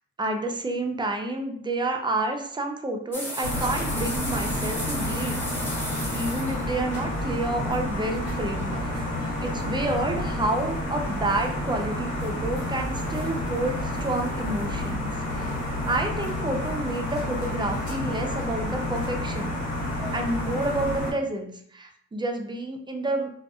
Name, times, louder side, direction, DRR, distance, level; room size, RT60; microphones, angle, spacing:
voice 1, 0.2-5.4 6.1-9.1 9.4-15.5 15.9-19.5 20.1-23.3, right 2 dB, 15° right, 3 dB, 0.4 m, -29 dB
sound 1, 3.1-8.1, equal, 5° left, 0.8 m, -35 dB
sound 2, 3.4-21.1, left 1 dB, 75° left, 1.3 m, -30 dB
2.5 x 2.3 x 2.4 m, 0.66 s
cardioid pair, 65°, 30 cm